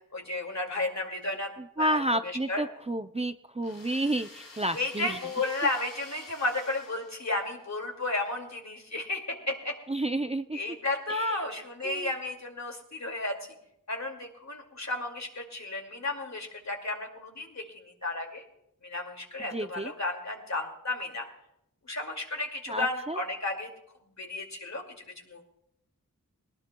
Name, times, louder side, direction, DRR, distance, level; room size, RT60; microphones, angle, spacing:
voice 1, 0.0-1.5 1.8-2.6 4.7-9.7 10.5-13.4 13.9-18.4 18.8-21.3 21.8-23.7 24.0-24.8 25.2-25.4, left 2 dB, 55° left, 3 dB, 2.3 m, -33 dB
voice 2, 1.8-5.2 9.9-10.6 11.1-11.4 11.8-12.1 19.5-19.9 22.7-23.2, right 1 dB, 20° right, 8 dB, 0.5 m, -30 dB
sound 1, 3.6-7.7, left 2 dB, 90° left, 2.0 m, -50 dB
21.5 x 18.5 x 2.3 m, 0.79 s
wide cardioid pair, 65°, 33 cm